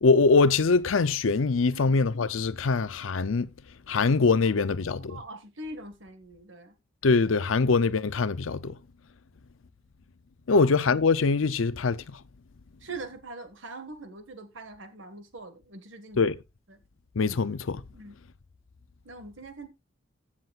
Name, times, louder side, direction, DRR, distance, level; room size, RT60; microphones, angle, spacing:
voice 1, 0.0-3.5 3.9-5.2 7.0-8.8 10.5-12.0 16.2-16.4 17.2-17.8, left 4 dB, 85° left, 0.6 m, -23 dB
voice 2, 4.5-6.7 10.5-10.7 12.8-16.3 16.7-16.8 17.9-18.2 19.1-19.7, right 2 dB, 75° right, 1.8 m, -43 dB
15.5 x 7.3 x 2.4 m
head